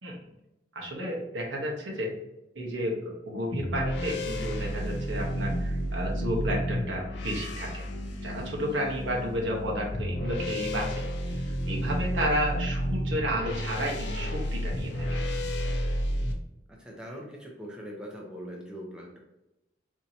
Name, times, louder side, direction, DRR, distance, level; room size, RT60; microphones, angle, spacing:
voice 1, 0.7-2.1 2.5-7.8 8.2-10.9 11.2-15.2, equal, 80° right, -2 dB, 1.1 m, -32 dB
sound 1, 3.5-16.3, equal, 65° left, 0.5 m, -31 dB
voice 2, 8.7-9.0 16.7-19.2, equal, 5° right, -2 dB, 0.6 m, -42 dB
4.5 x 2.8 x 2.7 m, 0.91 s
head